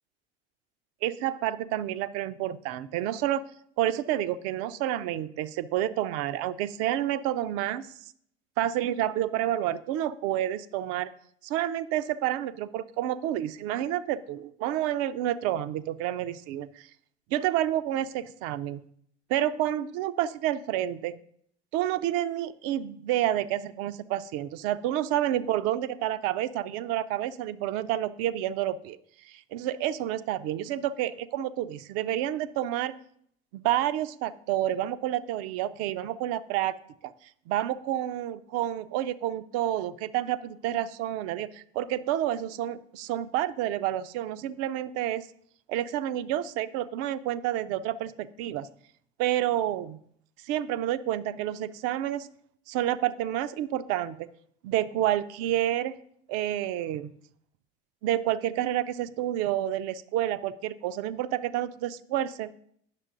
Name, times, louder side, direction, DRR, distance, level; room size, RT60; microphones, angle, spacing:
voice 1, 1.0-3.4 3.8-7.9 8.6-11.1 11.4-16.9 17.3-18.8 19.3-21.2 21.7-29.0 29.2-32.9 33.5-36.7 37.0-37.1 37.5-45.3 45.7-48.7 49.2-50.0 50.4-52.3 52.7-54.3 54.6-55.9 56.3-57.1 58.0-62.5, right 12 dB, 50° right, 14 dB, 0.5 m, -29 dB
9.1 x 6.4 x 3.8 m, 0.66 s
figure-of-eight pair, 65°, 32 cm